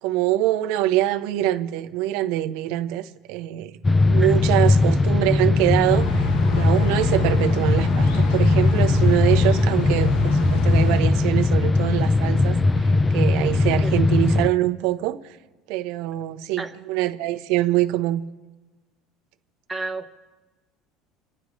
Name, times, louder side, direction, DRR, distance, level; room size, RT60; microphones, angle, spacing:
voice 1, 0.0-3.8 4.1-15.4 15.7-18.2, right 14 dB, 75° right, 0.8 m, -24 dB
sound 1, 3.8-14.5, left 2 dB, 15° left, 0.4 m, -19 dB
sound 2, 5.9-11.0, left 5 dB, 85° left, 1.3 m, -29 dB
voice 2, 19.7-20.1, right 3 dB, 10° right, 1.0 m, -31 dB
29.0 x 11.0 x 3.1 m
cardioid pair, 130°, 0 cm